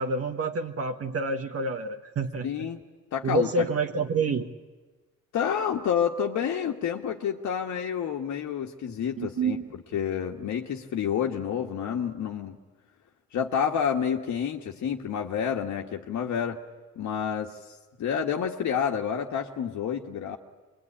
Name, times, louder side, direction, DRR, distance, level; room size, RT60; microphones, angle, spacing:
voice 1, 0.0-2.7 3.2-4.5 9.2-9.7, right 3 dB, 50° right, 4 dB, 1.6 m, -28 dB
voice 2, 2.4-2.8 3.1-3.7 5.3-12.6 13.3-16.6 16.9-17.5 18.0-20.4, left 8 dB, 70° left, 1 dB, 1.6 m, -29 dB
25.0 x 22.0 x 10.0 m, 1.3 s
cardioid pair, 90°, 30 cm